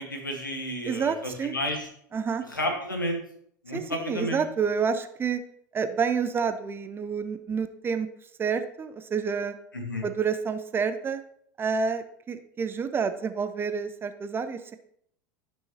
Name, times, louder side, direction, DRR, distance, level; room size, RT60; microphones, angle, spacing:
voice 1, 0.0-1.9 2.5-3.2 3.6-4.4 9.7-10.1, equal, 85° left, 3 dB, 1.4 m, -31 dB
voice 2, 0.8-1.5 2.1-2.4 3.7-5.4 5.7-8.1 8.4-9.5 10.0-11.2 11.6-14.8, right 6 dB, 20° right, 10 dB, 0.6 m, -29 dB
12.5 x 5.6 x 2.8 m, 0.68 s
figure-of-eight pair, 80°, 10 cm